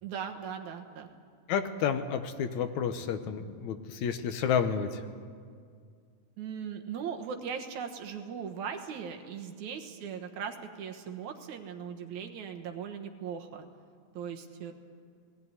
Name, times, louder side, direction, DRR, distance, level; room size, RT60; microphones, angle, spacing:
voice 1, 0.0-1.1 6.4-13.6 14.1-14.7, right 7 dB, 75° right, 4 dB, 2.7 m, -39 dB
voice 2, 1.5-5.0, left 7 dB, 75° left, 8 dB, 2.3 m, -30 dB
19.5 x 16.5 x 9.6 m, 2.1 s
omnidirectional pair, 3.5 m